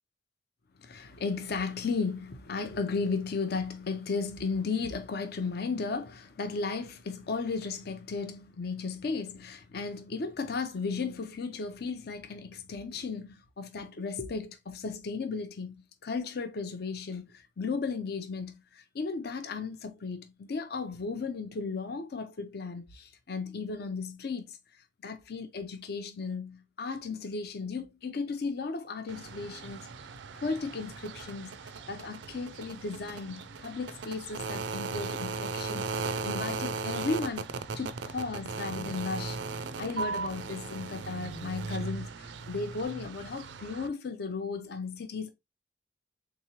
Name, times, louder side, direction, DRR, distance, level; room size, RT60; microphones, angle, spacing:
voice 1, 0.8-24.6 25.0-29.9 30.3-45.3, left 4 dB, 60° left, 0.5 m, -35 dB
sound 1, 29.1-43.9, right 4 dB, 80° right, 0.4 m, -37 dB
3.6 x 3.0 x 2.8 m
head